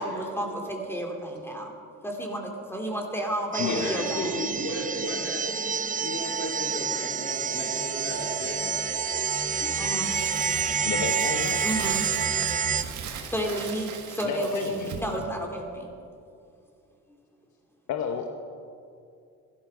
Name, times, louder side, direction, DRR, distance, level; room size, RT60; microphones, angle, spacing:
voice 1, 0.0-1.7 2.0-4.4 9.6-10.2 11.6-12.0 13.3-15.9, right 1 dB, 10° left, 1 dB, 2.6 m, -31 dB
sound 1, 3.5-12.8, right 6 dB, 25° right, 0.7 m, -28 dB
voice 2, 3.6-5.6 6.0-8.6, left 2 dB, 50° left, -2 dB, 3.3 m, -35 dB
Crumpling crinkling, 10.0-15.2, right 7 dB, 75° right, 1.6 m, -40 dB
voice 3, 10.8-11.6 14.2-14.9 17.9-18.3, left 7 dB, 75° left, 4 dB, 1.1 m, -31 dB
15.0 x 13.0 x 5.7 m, 2.4 s
cardioid pair, 90°, 30 cm